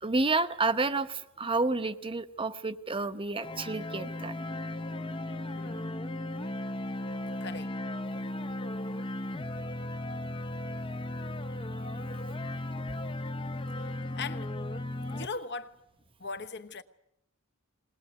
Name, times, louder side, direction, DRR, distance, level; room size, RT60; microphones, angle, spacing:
voice 1, 0.0-4.3, right 3 dB, 25° right, 1.0 m, -30 dB
sound 1, 3.4-15.3, left 1 dB, 25° left, 0.8 m, -36 dB
voice 2, 5.5-6.0 7.4-7.7 13.8-14.5 15.1-15.8 16.2-16.8, left 4 dB, 55° left, 1.2 m, -40 dB
21.0 x 20.0 x 9.5 m
head